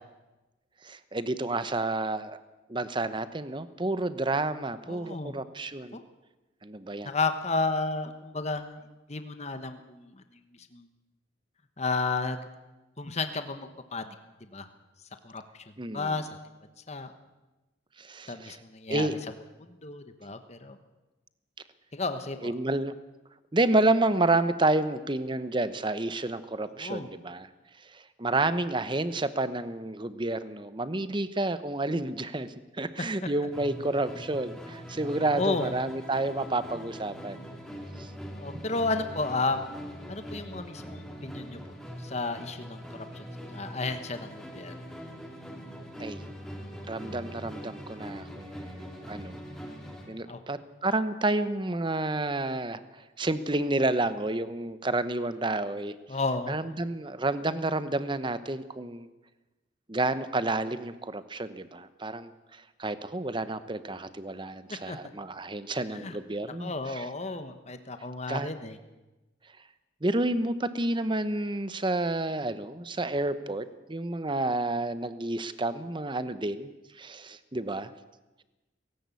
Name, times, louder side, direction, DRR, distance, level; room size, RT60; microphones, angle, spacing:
voice 1, 0.8-2.4 2.7-6.0 6.6-7.1 15.8-16.2 18.0-18.6 18.9-19.1 22.4-22.9 23.5-27.5 27.8-37.4 38.0-38.1 46.0-46.2 46.9-49.4 50.1-52.8 53.2-55.9 56.5-59.1 59.9-67.1 68.3-68.5 70.0-77.9, right 2 dB, 25° right, 13 dB, 0.9 m, -30 dB
voice 2, 4.9-5.3 5.9-6.0 7.0-8.8 9.1-10.1 10.7-10.9 11.8-12.4 13.0-14.1 14.5-14.7 15.2-15.6 15.9-16.3 16.9-17.1 18.3-19.1 19.6-20.8 21.9-22.5 26.8-27.1 35.2-35.7 38.3-39.8 40.1-41.6 42.0-44.8 50.3-50.4 56.1-56.5 64.9-65.0 65.9-66.1 66.6-68.8, left 3 dB, 35° left, 8 dB, 1.2 m, -32 dB
Musical instrument, 33.5-50.2, equal, ahead, 2.9 m, -42 dB
18.0 x 17.0 x 8.4 m, 1.1 s
head